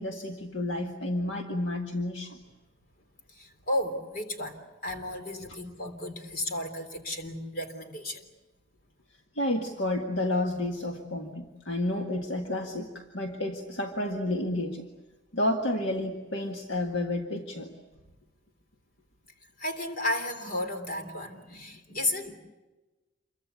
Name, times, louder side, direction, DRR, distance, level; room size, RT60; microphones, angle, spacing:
voice 1, 0.0-2.4 9.4-14.9 15.3-17.7, left 1 dB, 60° left, 2 dB, 1.8 m, -30 dB
voice 2, 3.3-8.2 19.6-22.3, left 1 dB, 45° left, 6 dB, 3.5 m, -33 dB
28.0 x 23.5 x 8.3 m, 1.2 s
head